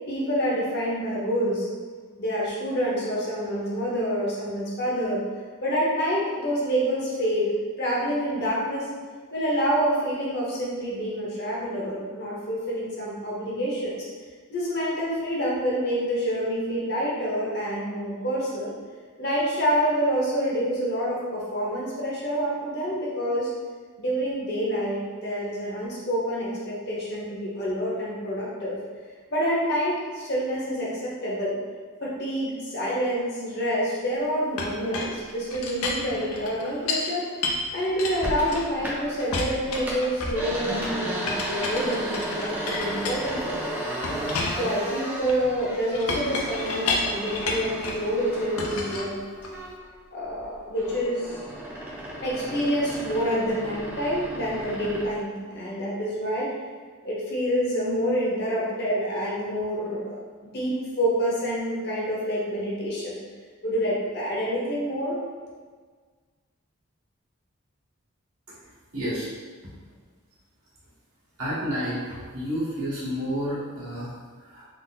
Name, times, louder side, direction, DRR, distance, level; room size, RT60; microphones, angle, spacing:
voice 1, 0.1-1.7 2.2-5.2 5.6-8.9 9.3-14.0 14.5-18.7 19.2-23.5 24.0-28.8 29.3-31.5 32.0-37.3 37.7-43.7 44.5-49.1 50.1-51.4 52.2-56.5 57.0-63.2 63.6-65.2, equal, 50° left, -6 dB, 0.9 m, -27 dB
Chink clink, 34.6-37.1 37.4-38.9 39.3-40.5 41.3-43.6 44.0-48.1 48.6-49.7, left 3 dB, 85° left, 0.5 m, -31 dB
sound 1, 38.2-39.3 39.6-49.9 50.3-55.1, right 1 dB, 10° right, 0.5 m, -34 dB
voice 2, 68.9-69.3 71.4-74.7, equal, 85° right, -9 dB, 1.5 m, -30 dB
3.6 x 2.0 x 3.9 m, 1.5 s
head